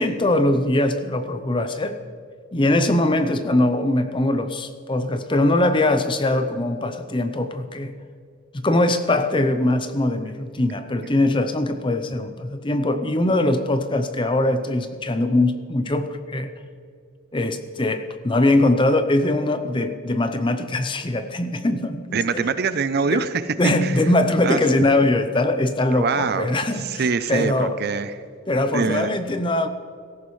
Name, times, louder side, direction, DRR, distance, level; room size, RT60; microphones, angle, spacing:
voice 1, 0.0-2.0 2.5-7.9 8.5-16.5 17.3-22.5 23.1-23.2 23.6-27.8 28.5-29.7, left 1 dB, 25° left, 9 dB, 0.6 m, -21 dB
voice 2, 22.1-23.4 23.8-24.0 24.4-24.6 25.9-28.1 28.7-29.1, right 5 dB, 45° right, 13 dB, 0.5 m, -24 dB
17.0 x 14.0 x 3.2 m, 2.2 s
head